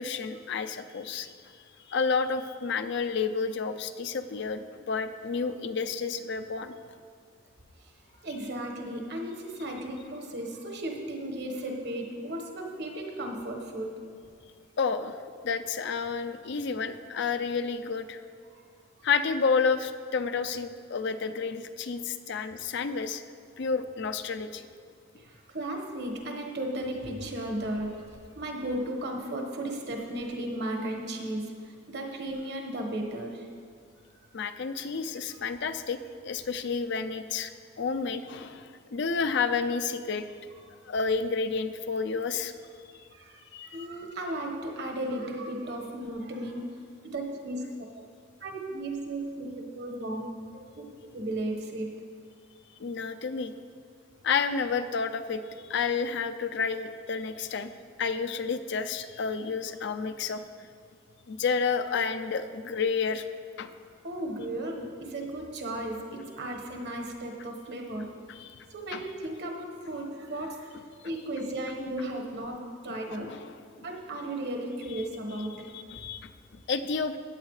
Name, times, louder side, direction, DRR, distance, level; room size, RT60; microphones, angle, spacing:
voice 1, 0.0-1.5 1.9-6.7 14.8-15.2 15.4-18.2 19.0-23.2 23.6-24.7 34.3-36.0 36.2-37.5 37.8-40.3 40.9-42.5 43.5-43.9 52.8-53.5 54.2-55.4 55.7-57.7 58.0-60.7 61.3-63.2 63.6-63.7 68.3-68.7 68.9-69.0 73.1-73.5 75.7-77.2, left 5 dB, 60° left, 9 dB, 0.5 m, -30 dB
voice 2, 7.8-13.9 18.4-18.6 19.0-19.1 23.6-23.7 25.2-33.5 43.1-47.6 47.9-48.0 48.4-50.3 50.7-50.8 51.1-52.0 64.0-68.1 68.7-70.7 71.0-73.3 73.8-75.7, right 1 dB, 60° right, 2 dB, 1.4 m, -35 dB
16.5 x 8.0 x 3.2 m, 2.1 s
head